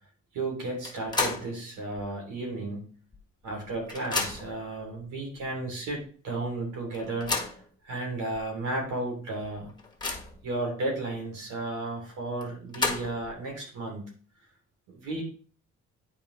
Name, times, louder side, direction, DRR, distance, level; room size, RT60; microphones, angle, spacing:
voice 1, 0.3-2.9 3.4-7.3 7.8-9.7 10.4-14.1 14.9-15.2, right 2 dB, 90° right, 0 dB, 3.1 m, -33 dB
sound 1, 0.8-1.6 2.0-2.1 3.1-3.2 3.5-4.6 5.4-5.5 5.9-6.0 6.9-7.6 8.3-8.4 8.8-8.9 9.4-10.5 12.4-13.3, left 3 dB, 15° left, 1.6 m, -32 dB
9.1 x 5.0 x 3.2 m, 0.42 s
cardioid pair, 90°, 30 cm